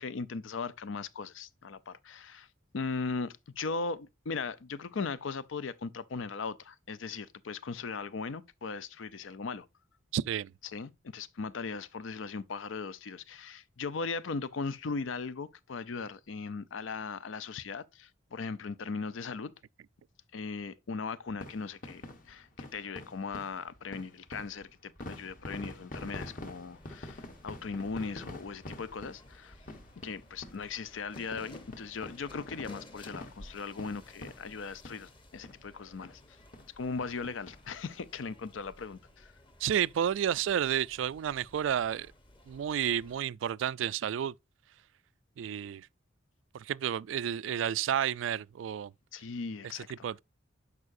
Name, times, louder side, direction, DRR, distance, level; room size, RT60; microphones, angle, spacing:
voice 1, 0.0-2.5 2.7-9.7 10.6-19.5 20.3-22.0 22.3-29.6 30.0-36.2 36.8-39.3 49.1-50.1, left 4 dB, 80° left, 0.5 m, -38 dB
voice 2, 10.1-10.5 39.6-42.1 42.5-44.3 45.4-45.9 46.5-48.9 50.0-50.2, right 9 dB, 75° right, 0.3 m, -31 dB
sound 1, 21.3-35.2 35.4-35.6 36.0-36.1 36.5-36.7 37.0-38.0 38.4-38.5 38.7-38.8, left 1 dB, 45° left, 1.2 m, -46 dB
sound 2, 26.3-43.2, left 1 dB, 25° left, 1.0 m, -56 dB
11.0 x 4.9 x 2.6 m
head